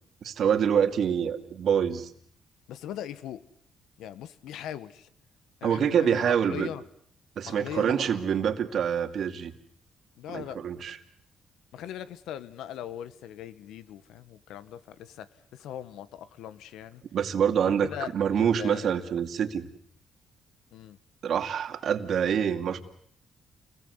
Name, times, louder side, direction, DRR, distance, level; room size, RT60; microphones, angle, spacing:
voice 1, 0.2-2.1 5.6-6.7 7.4-9.5 10.3-11.0 17.1-19.7 21.2-22.8, right 8 dB, 65° right, 7 dB, 2.4 m, -26 dB
voice 2, 2.7-3.4 4.0-5.1 5.6-6.8 7.4-8.2 10.2-10.7 11.7-17.0 17.6-19.0 20.7-21.0, left 10 dB, 85° left, 15 dB, 1.4 m, -40 dB
29.5 x 21.5 x 8.1 m, 0.64 s
cardioid pair, 90°, 0 cm